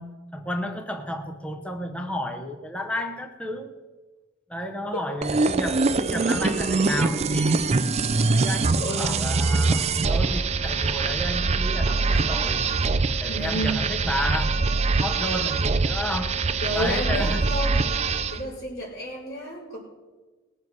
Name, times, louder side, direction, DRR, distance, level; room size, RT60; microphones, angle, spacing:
voice 1, 0.0-3.8 4.5-7.7 8.4-12.6 13.2-14.6 15.0-16.4 16.7-17.5, equal, 5° left, 4 dB, 0.8 m, -32 dB
sound 1, 5.2-18.4, right 3 dB, 30° right, 0.5 m, -23 dB
voice 2, 8.7-9.2 13.2-13.8 16.6-17.9 18.3-19.8, equal, 60° left, -11 dB, 4.7 m, -31 dB
20.0 x 7.5 x 4.7 m, 1.3 s
head